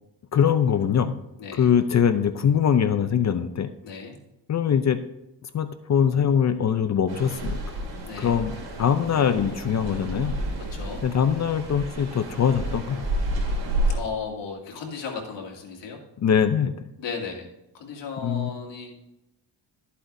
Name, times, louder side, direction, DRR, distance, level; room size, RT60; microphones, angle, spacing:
voice 1, 0.3-1.2 1.5-3.7 4.5-5.0 5.4-7.6 8.2-10.3 11.0-13.1 16.2-16.7 18.2-18.5, left 8 dB, 40° left, 10 dB, 0.5 m, -22 dB
voice 2, 3.8-4.2 8.0-8.4 10.7-11.0 13.9-16.0 17.0-17.5 17.7-19.0, left 5 dB, 75° left, -1 dB, 2.4 m, -35 dB
sound 1, 7.1-14.0, right 1 dB, 75° right, 3.3 m, -30 dB
12.5 x 8.4 x 2.6 m, 0.89 s
cardioid pair, 120°, 44 cm